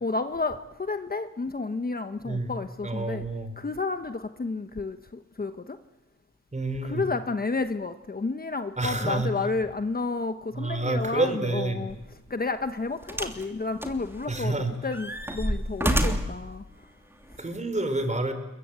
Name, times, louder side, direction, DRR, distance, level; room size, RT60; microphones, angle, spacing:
voice 1, 0.0-3.2 3.6-5.8 6.8-14.6 14.8-16.9 17.4-17.5, left 3 dB, 30° left, 8 dB, 1.1 m, -31 dB
voice 2, 2.8-3.5 6.5-7.0 8.8-9.3 10.5-11.9 14.3-14.7 17.4-18.3, right 2 dB, 25° right, 9 dB, 4.1 m, -28 dB
sound 1, 11.9-12.1 13.1-13.4 13.8-14.5 14.9-16.4 17.3-17.4, right 1 dB, 10° right, 3.0 m, -28 dB
29.0 x 22.5 x 8.9 m, 1.0 s
wide cardioid pair, 130°, 30 cm